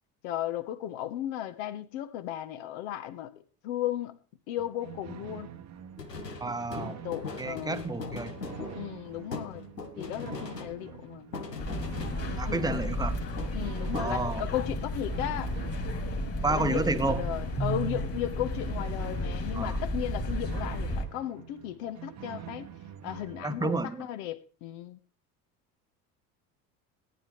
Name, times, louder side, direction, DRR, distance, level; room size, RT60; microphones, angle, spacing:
voice 1, 0.2-3.3 3.6-4.2 4.5-5.5 6.4-7.8 8.7-9.7 10.0-11.3 12.2-12.9 13.5-15.5 16.5-22.7 23.0-25.0, left 12 dB, 60° left, 1.3 m, -35 dB
sound 1, 4.6-23.8, right 10 dB, 35° right, 1.1 m, -47 dB
sound 2, 6.0-12.4 12.7-14.6, left 3 dB, 90° left, 1.4 m, -40 dB
voice 2, 6.4-7.0 7.4-8.3 12.4-13.1 13.9-14.5 16.4-18.1 19.5-19.8 23.4-24.1, right 3 dB, 10° right, 1.1 m, -30 dB
sound 3, 11.6-21.1, left 1 dB, 30° left, 2.9 m, -33 dB
18.5 x 10.0 x 3.3 m
figure-of-eight pair, 65°, 47 cm